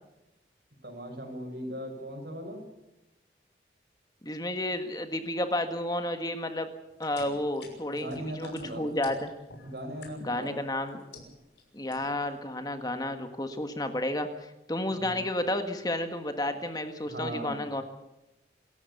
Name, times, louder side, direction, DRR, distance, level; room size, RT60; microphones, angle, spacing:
voice 1, 0.8-2.6 7.9-9.0 9.6-10.6 14.9-15.2 17.1-17.6, equal, 65° right, 4 dB, 6.4 m, -38 dB
voice 2, 4.2-6.7 7.0-9.3 10.2-11.0 11.7-17.8, left 1 dB, 20° left, 7 dB, 1.6 m, -31 dB
sound 1, 6.9-10.5 10.9-11.6 11.9-12.3, left 3 dB, 85° left, 6.2 m, -49 dB
27.0 x 14.5 x 7.1 m, 0.95 s
head